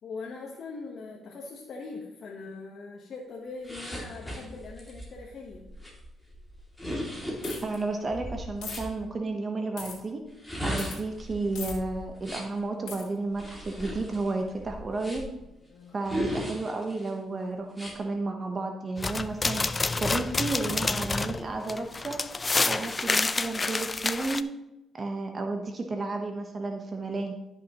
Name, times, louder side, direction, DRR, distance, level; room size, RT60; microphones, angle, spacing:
voice 1, 0.0-5.7 15.7-16.1, left 4 dB, 60° left, -1 dB, 1.2 m, -41 dB
sound 1, 3.6-8.9 10.3-12.6 13.3-15.4 16.0-17.1 17.7-18.0, equal, 5° left, 2.6 m, -37 dB
sound 2, 7.4-7.8 8.6-8.8 9.8-10.0 10.8-11.0 11.6-11.7 12.9-13.0, left 6 dB, 85° left, 2.0 m, -38 dB
voice 2, 7.6-10.2 10.6-15.3 15.9-19.6 20.0-22.2 22.6-24.5 24.9-27.3, right 3 dB, 35° right, 3 dB, 1.0 m, -32 dB
sound 3, 19.0-24.4, left 3 dB, 25° left, 0.4 m, -28 dB
12.5 x 5.8 x 3.0 m, 0.95 s
cardioid pair, 90°, 0 cm